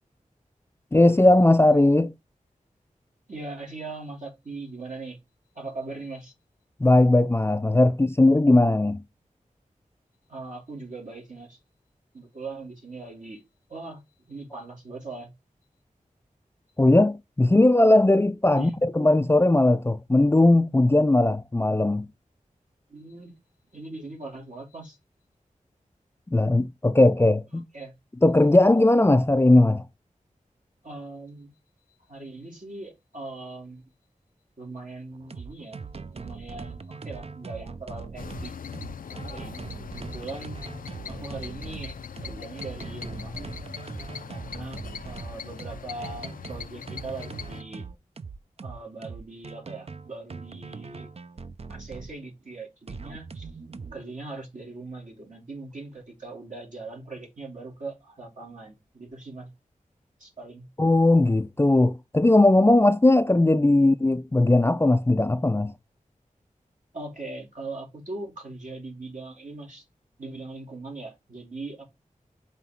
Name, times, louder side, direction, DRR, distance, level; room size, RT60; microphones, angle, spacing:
voice 1, 0.9-2.1 6.8-9.0 16.8-22.1 26.3-27.6 28.2-29.8 60.8-65.7, left 2 dB, 15° left, 0.4 m, -19 dB
voice 2, 3.3-5.2 5.5-6.3 10.3-11.6 12.1-13.4 13.7-14.0 14.3-15.3 18.6-18.8 22.9-23.3 23.7-25.0 27.7-27.9 30.8-31.5 32.1-33.8 34.6-35.8 36.1-38.5 39.0-40.6 41.1-43.5 44.3-47.9 48.6-51.1 51.7-53.5 53.9-59.5 60.2-60.7 66.9-69.8 70.2-71.8, right 3 dB, 65° right, 3.2 m, -40 dB
sound 1, 35.1-52.1 52.9-54.0, right 4 dB, 45° right, 0.6 m, -40 dB
sound 2, 38.2-47.6, left 7 dB, 85° left, 0.5 m, -40 dB
5.5 x 4.0 x 4.5 m
wide cardioid pair, 65°, 14 cm